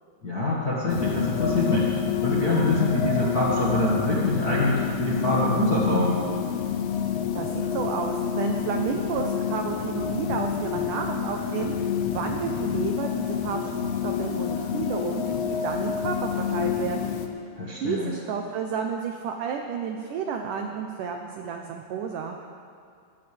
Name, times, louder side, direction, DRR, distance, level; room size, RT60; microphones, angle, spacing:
voice 1, 0.2-6.2 17.6-18.1, left 2 dB, 45° left, -7 dB, 1.3 m, -25 dB
sound 1, 0.9-17.3, left 8 dB, 75° left, 2.8 m, -28 dB
voice 2, 7.4-13.6 14.0-17.1 17.8-22.5, right 6 dB, 85° right, 3 dB, 1.8 m, -31 dB
20.5 x 15.5 x 3.5 m, 2.3 s
omnidirectional pair, 4.9 m